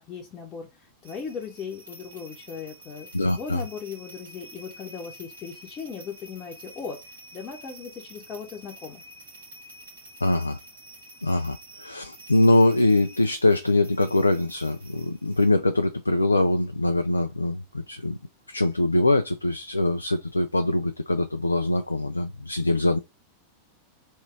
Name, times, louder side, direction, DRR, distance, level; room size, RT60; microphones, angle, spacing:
voice 1, 0.0-7.0 7.3-9.0, left 6 dB, 30° left, 1.0 m, -38 dB
sound 1, 1.0-15.5, right 1 dB, 70° right, 1.9 m, -48 dB
voice 2, 3.1-3.6 10.2-10.6 11.2-18.2 18.5-23.0, left 2 dB, 80° left, 0.3 m, -23 dB
3.5 x 3.0 x 4.6 m
figure-of-eight pair, 90°, 0 cm